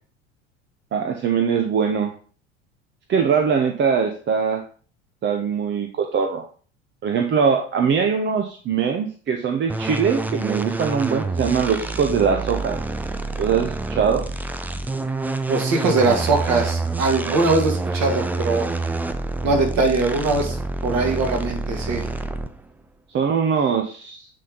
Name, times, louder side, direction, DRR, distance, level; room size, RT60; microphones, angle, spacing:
voice 1, 0.9-2.1 3.1-4.6 5.2-6.4 7.0-12.8 13.4-14.3 17.3-17.4 23.1-24.3, right 6 dB, 30° right, 4 dB, 0.8 m, -22 dB
sound 1, 9.7-22.7, right 3 dB, 5° right, 0.3 m, -27 dB
voice 2, 15.5-18.7 19.4-20.6 20.8-22.1, right 3 dB, 45° right, 2 dB, 2.1 m, -21 dB
8.5 x 3.6 x 3.8 m, 0.42 s
figure-of-eight pair, 75°, 37 cm